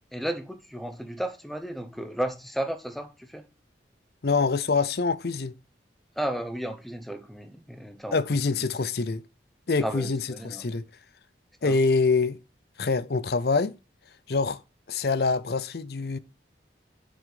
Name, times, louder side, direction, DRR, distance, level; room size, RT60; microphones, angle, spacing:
voice 1, 0.1-3.5 6.2-8.2 9.8-10.7 11.6-11.8, right 1 dB, ahead, 0.8 m, -33 dB
voice 2, 4.2-5.5 8.1-9.2 9.7-10.8 11.6-12.4 12.8-13.8 14.3-14.6 14.9-16.2, left 4 dB, 60° left, 0.6 m, -25 dB
7.2 x 5.4 x 4.9 m
head